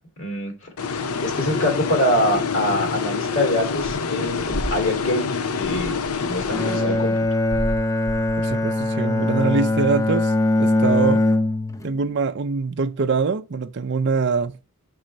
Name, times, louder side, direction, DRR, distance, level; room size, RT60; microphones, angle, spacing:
voice 1, 0.2-0.5 1.2-7.1, left 1 dB, 60° left, 2.8 m, -24 dB
sound 1, 0.8-7.4, left 5 dB, 75° left, 0.7 m, -27 dB
sound 2, 3.8-4.0 4.3-8.9, right 1 dB, 40° left, 1.4 m, -34 dB
Bowed string instrument, 6.5-12.0, left 2 dB, 15° left, 0.6 m, -21 dB
voice 2, 8.4-10.3 10.6-11.2 11.8-14.6, right 4 dB, 50° right, 0.5 m, -23 dB
6.1 x 4.4 x 6.5 m
head